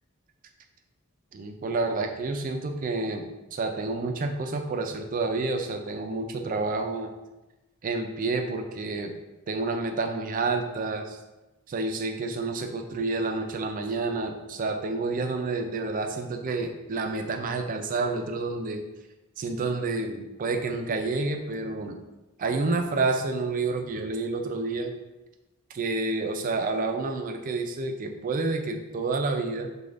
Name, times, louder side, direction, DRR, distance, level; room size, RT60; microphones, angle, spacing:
voice 1, 1.3-7.1 7.8-9.1 9.5-11.2 11.7-18.8 19.4-22.0 22.4-24.9 25.7-29.7, right 3 dB, 40° right, 5 dB, 0.3 m, -29 dB
4.9 x 2.3 x 2.4 m, 1.0 s
head